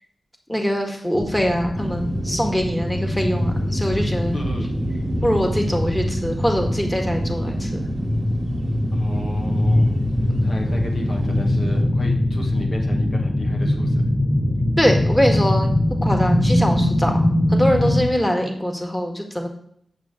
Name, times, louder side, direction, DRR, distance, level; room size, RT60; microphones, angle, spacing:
voice 1, 0.5-4.4 5.2-7.8 10.3-10.4 14.8-17.2 17.5-19.5, equal, 15° left, 3 dB, 1.6 m, -23 dB
sound 1, 1.2-18.0, left 1 dB, 5° right, 1.4 m, -22 dB
sound 2, 1.7-11.8, right 2 dB, 60° right, 1.1 m, -30 dB
voice 2, 4.3-4.7 8.9-10.0 10.4-14.1, left 1 dB, 65° left, 1 dB, 1.3 m, -33 dB
8.1 x 5.8 x 3.7 m, 0.68 s
cardioid pair, 45°, 0 cm